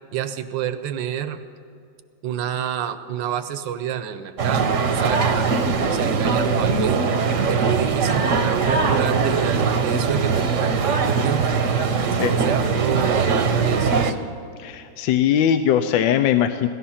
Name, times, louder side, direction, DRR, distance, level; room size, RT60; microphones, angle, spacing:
voice 1, 0.1-1.4 2.2-7.2 7.5-11.6 12.0-14.2, right 9 dB, 75° right, 10 dB, 1.5 m, -29 dB
sound 1, 4.4-14.1, right 5 dB, 50° right, 1.1 m, -21 dB
voice 2, 14.6-16.7, left 10 dB, 80° left, 8 dB, 1.3 m, -20 dB
17.0 x 13.5 x 5.7 m, 2.5 s
omnidirectional pair, 2.1 m